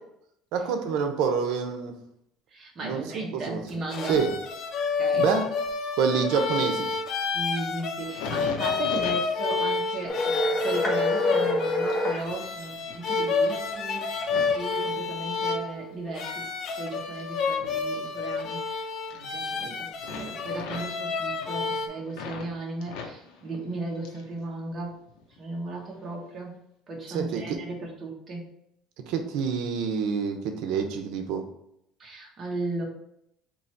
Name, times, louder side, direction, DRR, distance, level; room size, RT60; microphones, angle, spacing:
voice 1, 0.5-1.9 2.8-3.6 4.1-4.3 5.2-5.5 6.0-6.9 27.1-27.4 29.1-31.4, right 6 dB, 75° right, 5 dB, 0.8 m, -27 dB
voice 2, 2.5-4.2 5.0-5.2 7.3-14.0 14.3-16.4 16.8-18.9 19.1-24.9 25.4-26.6 26.9-28.5 32.0-32.8, right 2 dB, 30° right, -1 dB, 1.3 m, -36 dB
sound 1, 3.7-21.9, left 4 dB, 50° left, 0.5 m, -29 dB
sound 2, 8.0-15.7 16.1-18.7 19.0-19.7 20.0-22.5 22.8-24.4 24.7-25.4 25.9-26.2, left 5 dB, 90° left, 0.8 m, -42 dB
sound 3, 10.1-12.2, left 1 dB, 10° left, 1.2 m, -26 dB
4.0 x 3.0 x 4.4 m, 0.75 s
cardioid pair, 135°, 0 cm